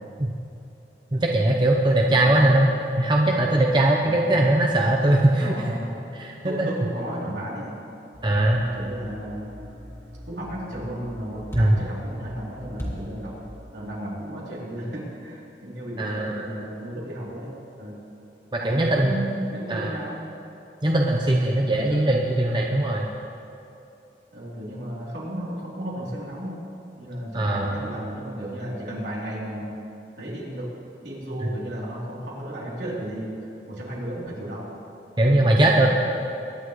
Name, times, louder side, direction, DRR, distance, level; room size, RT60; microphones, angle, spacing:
voice 1, 1.1-2.7 3.0-5.7 6.2-6.7 8.2-8.6 11.5-11.8 16.0-16.5 18.5-19.2 19.7-20.0 20.8-23.1 27.3-27.8 35.2-35.9, right 1 dB, 25° right, -1 dB, 0.9 m, -20 dB
voice 2, 2.2-2.8 4.0-4.4 5.4-5.9 6.4-7.8 8.6-9.5 10.3-13.3 13.7-18.0 18.6-20.2 21.8-22.2 24.3-26.6 27.0-29.7 30.2-30.7 31.0-33.3 33.7-34.6 35.3-35.9, equal, 75° right, -5 dB, 3.5 m, -34 dB
sound 1, 8.1-13.5, equal, 15° left, 2.1 m, -39 dB
23.5 x 10.5 x 3.2 m, 2.7 s
head